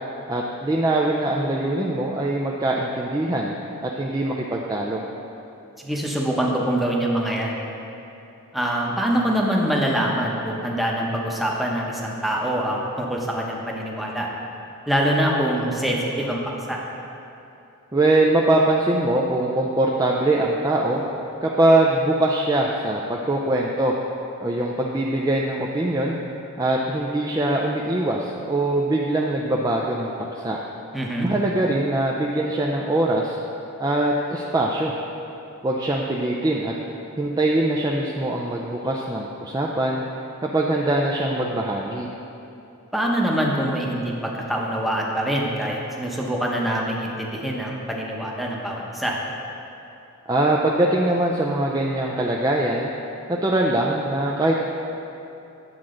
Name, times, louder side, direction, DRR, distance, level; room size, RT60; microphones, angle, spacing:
voice 1, 0.3-3.5 3.8-5.0 17.9-21.0 21.4-23.9 24.4-26.2 26.6-30.6 31.2-33.4 33.8-34.9 35.6-36.7 37.2-40.0 40.4-42.1 50.3-52.9 53.3-54.6, right 1 dB, 15° right, -2 dB, 0.4 m, -22 dB
voice 2, 5.8-7.6 8.5-14.3 14.9-16.8 30.9-31.3 42.9-49.2, right 1 dB, ahead, -3 dB, 0.8 m, -24 dB
9.4 x 7.4 x 3.8 m, 2.9 s
head